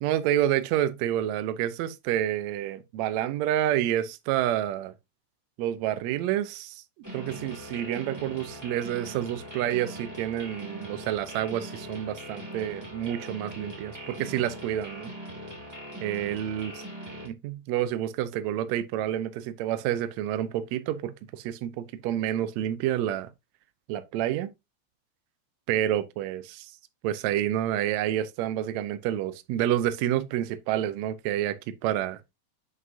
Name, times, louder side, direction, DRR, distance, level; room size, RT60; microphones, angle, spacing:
voice 1, 0.0-4.9 5.6-6.8 7.1-15.1 16.0-16.7 17.2-23.3 23.9-24.5 25.7-26.7 27.0-31.6 31.8-32.2, right 12 dB, 75° right, 1.8 m, -28 dB
sound 1, 7.0-17.3, equal, 5° right, 2.1 m, -41 dB
7.5 x 5.5 x 2.6 m
omnidirectional pair, 3.5 m